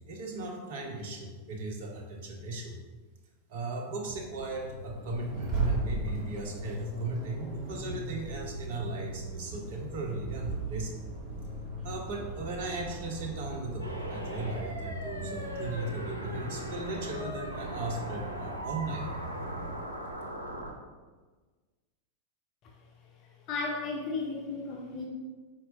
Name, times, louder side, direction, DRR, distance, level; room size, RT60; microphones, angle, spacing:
voice 1, 0.1-2.7 3.5-11.1 11.8-19.1, right 2 dB, 55° right, 0 dB, 0.8 m, -37 dB
Accelerating revving vroom, 4.0-19.8, right 2 dB, 35° right, 1.4 m, -38 dB
sound 1, 13.8-20.7, equal, 90° left, 0.5 m, -40 dB
voice 2, 23.5-25.1, left 3 dB, 35° left, 0 dB, 0.5 m, -34 dB
4.3 x 4.0 x 2.6 m, 1.3 s
figure-of-eight pair, 90°, 0 cm